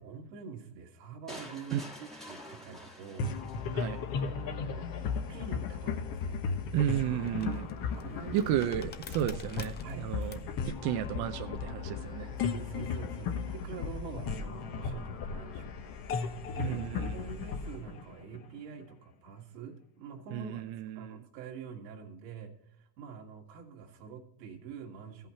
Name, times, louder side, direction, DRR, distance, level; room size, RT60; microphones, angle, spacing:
voice 1, 0.0-6.4 7.4-7.7 7.9-8.9 9.8-10.1 12.4-15.8 16.3-20.6 21.0-25.3, right 5 dB, 85° right, 3 dB, 2.1 m, -46 dB
sound 1, 1.3-4.3, equal, ahead, 1.6 m, -48 dB
sound 2, 3.2-18.8, left 5 dB, 45° left, 1.2 m, -36 dB
voice 2, 3.7-4.0 6.7-7.6 8.3-10.4 10.6-12.4 16.6-17.1 20.3-21.1, right 11 dB, 50° right, 7 dB, 0.6 m, -33 dB
sound 3, 6.2-12.8, left 7 dB, 20° left, 0.5 m, -52 dB
15.0 x 5.7 x 4.3 m, 0.79 s
supercardioid pair, 130°, 49 cm